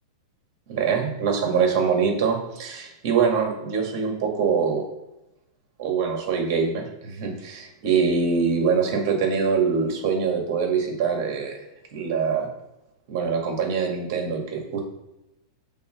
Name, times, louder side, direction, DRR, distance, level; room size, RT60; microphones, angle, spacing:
voice 1, 0.7-4.8 5.8-11.6 11.9-12.5 13.1-14.8, right 6 dB, 40° right, 1 dB, 2.1 m, -24 dB
6.9 x 4.1 x 6.6 m, 0.91 s
supercardioid pair, 175°, 2 cm